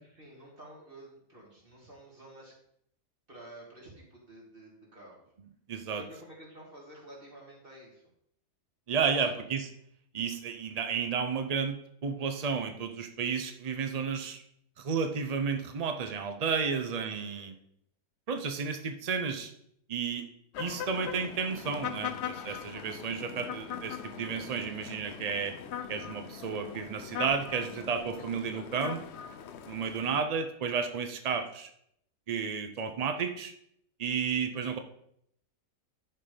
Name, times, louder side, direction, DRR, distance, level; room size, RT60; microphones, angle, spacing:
voice 1, 0.0-2.5 3.3-5.2 6.0-8.0 9.1-9.3 17.3-17.6, right 1 dB, 35° right, -3 dB, 2.9 m, -51 dB
voice 2, 5.7-6.0 8.9-9.7 10.1-14.4 14.8-17.5 18.3-19.5 19.9-20.2 20.6-25.5 25.9-29.0 29.7-31.7 32.3-33.5 34.0-34.8, right 6 dB, 55° right, 6 dB, 0.4 m, -32 dB
sound 1, 20.5-30.2, left 8 dB, 60° left, 0.8 m, -41 dB
11.0 x 4.6 x 5.1 m, 0.72 s
omnidirectional pair, 1.6 m